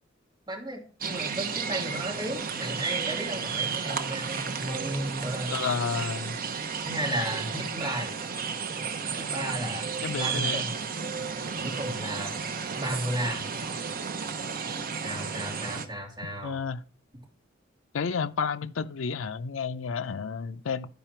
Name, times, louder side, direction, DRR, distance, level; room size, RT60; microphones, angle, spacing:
voice 1, 0.5-5.5 6.8-8.1 9.2-10.7 11.6-12.3 12.7-13.4 15.0-16.6, right 1 dB, 20° right, 2.7 m, -34 dB
sound 1, 1.0-15.9, right 6 dB, 45° right, 0.8 m, -33 dB
voice 2, 5.5-6.4 10.0-10.6 16.4-16.8 17.9-20.9, left 5 dB, 70° left, 0.5 m, -31 dB
11.5 x 4.9 x 4.4 m
head